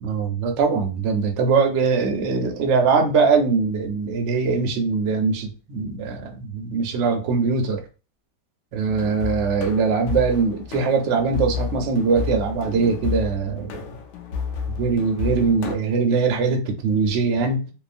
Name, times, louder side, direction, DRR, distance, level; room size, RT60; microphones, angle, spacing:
voice 1, 0.0-7.8 8.7-13.8 14.8-17.7, right 5 dB, 65° right, 0.7 m, -22 dB
sound 1, 8.9-15.7, left 6 dB, 85° left, 0.6 m, -31 dB
2.8 x 2.3 x 2.5 m
omnidirectional pair, 1.8 m